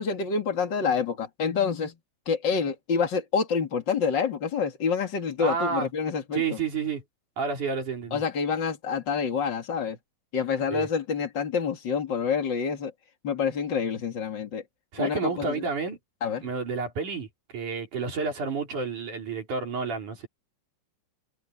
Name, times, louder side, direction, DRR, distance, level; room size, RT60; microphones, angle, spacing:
voice 1, 0.0-1.9 2.2-6.6 8.1-10.0 10.3-12.9 13.2-14.6 15.0-15.6 16.2-16.5, left 6 dB, 40° left, 1.6 m, -27 dB
voice 2, 5.4-5.9 6.3-7.0 7.4-8.2 10.7-10.9 14.9-16.0 16.4-20.3, right 5 dB, 45° right, 5.0 m, -30 dB
omnidirectional pair, 5.5 m